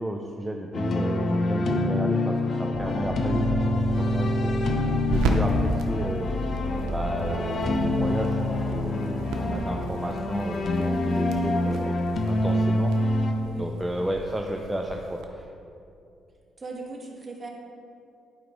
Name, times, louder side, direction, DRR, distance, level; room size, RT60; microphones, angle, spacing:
voice 1, 0.0-3.4 3.7-4.6 5.1-6.3 6.9-11.9 12.2-12.9 13.6-15.5, right 1 dB, 10° right, 1 dB, 0.5 m, -33 dB
sound 1, 0.7-13.3, left 1 dB, 55° left, 0.7 m, -26 dB
sound 2, 2.7-9.6, left 1 dB, 85° left, 1.7 m, -33 dB
sound 3, 3.1-15.2, right 2 dB, 90° right, 0.7 m, -35 dB
voice 2, 13.4-13.8 16.6-17.5, right 3 dB, 30° right, 0 dB, 1.5 m, -39 dB
11.0 x 4.9 x 3.7 m, 2.6 s
cardioid pair, 90°, 0 cm